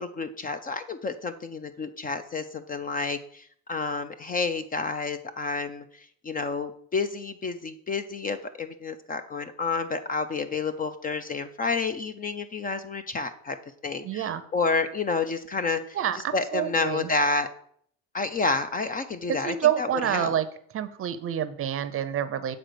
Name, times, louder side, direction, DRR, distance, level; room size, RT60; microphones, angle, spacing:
voice 1, 0.0-13.6 13.8-17.5 18.1-20.4, left 4 dB, 25° left, 10 dB, 0.4 m, -30 dB
voice 2, 14.0-14.4 15.9-17.1 19.3-20.5 20.7-22.6, right 10 dB, 40° right, 12 dB, 0.6 m, -27 dB
7.8 x 4.0 x 6.7 m, 0.63 s
cardioid pair, 135°, 35 cm